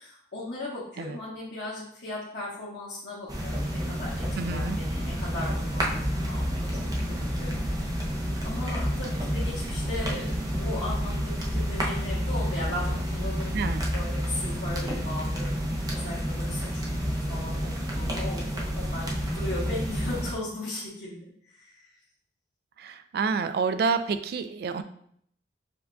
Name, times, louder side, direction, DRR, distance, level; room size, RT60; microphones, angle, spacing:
voice 1, 0.0-8.1 8.4-19.1 19.3-21.9, left 2 dB, 75° left, -8 dB, 1.1 m, -38 dB
sound 1, 3.3-20.3, equal, 20° right, 0.6 m, -29 dB
voice 2, 4.3-4.8 13.5-13.9 22.8-24.8, right 5 dB, 60° right, 10 dB, 0.3 m, -28 dB
6.9 x 2.5 x 2.2 m, 0.67 s
head